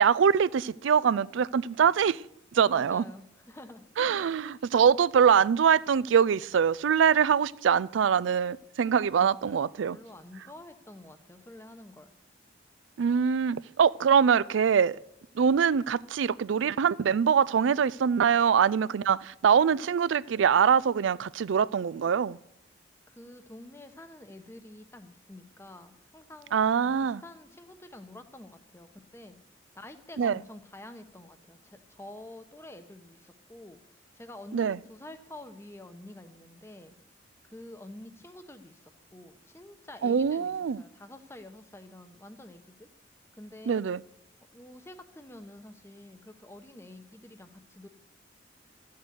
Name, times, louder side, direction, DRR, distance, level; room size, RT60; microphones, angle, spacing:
voice 1, 0.0-2.2 2.5-3.0 4.0-10.0 13.0-15.0 15.4-22.4 26.5-27.2 30.2-30.4 34.5-34.8 40.0-40.8 43.7-44.0, right 7 dB, 85° right, 0.4 m, -23 dB
voice 2, 2.7-3.8 4.4-4.6 9.1-12.1 23.1-29.4 29.7-36.9 37.4-42.9 43.4-43.8 44.5-47.9, left 1 dB, 15° left, 0.9 m, -48 dB
13.5 x 6.7 x 7.9 m
head